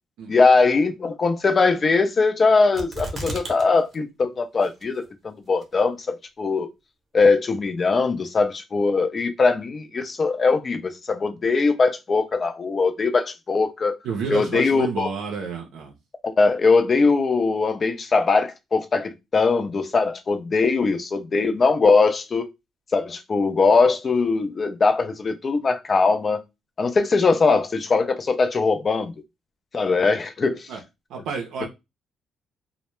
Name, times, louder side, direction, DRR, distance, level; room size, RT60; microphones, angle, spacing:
voice 1, 0.3-6.7 7.1-14.0 14.3-15.1 16.4-22.5 22.9-26.4 26.8-29.1 29.7-30.7, left 4 dB, 40° left, 0.4 m, -21 dB
sound 1, 2.8-3.6 3.9-4.0 4.6-5.1 5.6-5.7, right 2 dB, 40° right, 0.7 m, -33 dB
voice 2, 14.0-15.9 30.7-30.8 31.1-31.7, right 5 dB, 85° right, 0.5 m, -30 dB
2.1 x 2.0 x 3.0 m
cardioid pair, 90°, 0 cm